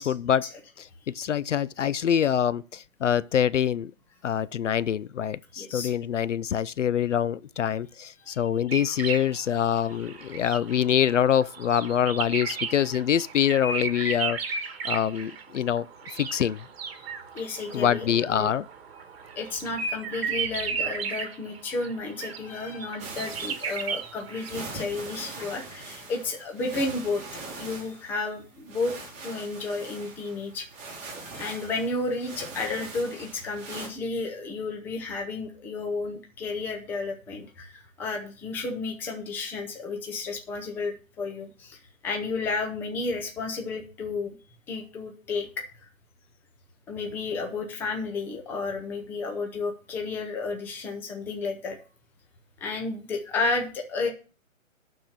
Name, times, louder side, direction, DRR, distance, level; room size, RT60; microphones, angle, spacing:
voice 1, 0.0-0.5 0.8-3.9 4.2-14.4 14.8-15.9 16.1-16.6 17.7-18.7, left 9 dB, 65° left, 0.5 m, -25 dB
voice 2, 5.6-5.9 8.2-8.5 14.9-15.0 17.3-18.6 19.4-27.2 27.6-28.9 29.2-30.7 31.2-44.3 44.7-45.5 46.9-51.8 52.6-54.1, left 3 dB, 5° left, 0.7 m, -32 dB
sound 1, 8.7-24.8, right 5 dB, 45° right, 1.7 m, -35 dB
sound 2, 23.0-33.9, right 3 dB, 15° right, 2.4 m, -42 dB
11.5 x 4.5 x 6.5 m
figure-of-eight pair, 140°, 41 cm